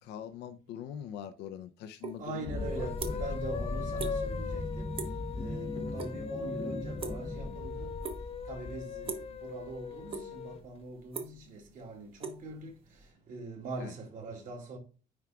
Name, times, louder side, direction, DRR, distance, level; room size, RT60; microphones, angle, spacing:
voice 1, 0.0-3.2 5.8-5.9 13.8-13.9, left 9 dB, 85° left, 0.7 m, -43 dB
sound 1, 2.0-2.2 2.5-3.4 3.7-4.2 4.4-4.7 5.0-5.3 5.6-6.1 6.4-7.6 8.0-8.5 9.0-9.4 9.8-10.5 10.8-13.0, right 5 dB, 35° right, 1.1 m, -40 dB
voice 2, 2.2-5.0 5.3-7.9 8.5-12.8 13.3-14.8, right 3 dB, 50° right, 2.5 m, -42 dB
sound 2, 2.5-10.6, left 6 dB, 35° left, 1.1 m, -40 dB
sound 3, 2.5-9.3, left 2 dB, 15° left, 0.6 m, -38 dB
9.6 x 4.6 x 2.4 m
cardioid pair, 150°, 17 cm